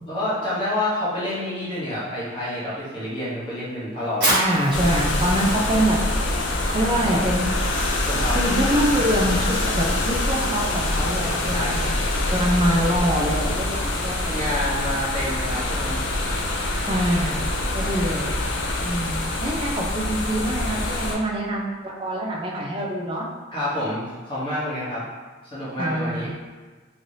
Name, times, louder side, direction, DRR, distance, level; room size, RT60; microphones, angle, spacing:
voice 1, 0.1-4.3 8.0-8.4 11.5-11.8 14.3-16.0 23.5-25.0 25.4-26.3, left 1 dB, 25° left, -10 dB, 0.8 m, -28 dB
Fire, 4.1-11.3, right 1 dB, 55° right, 1.1 m, -32 dB
voice 2, 4.3-6.0 6.2-6.3 6.7-7.5 8.3-11.8 12.3-14.4 16.9-17.5 17.7-18.3 18.8-23.3 25.8-26.4, equal, 25° right, -1 dB, 0.4 m, -25 dB
sound 1, 4.7-21.2, left 1 dB, 70° left, 0.4 m, -25 dB
3.1 x 2.7 x 2.6 m, 1.4 s
head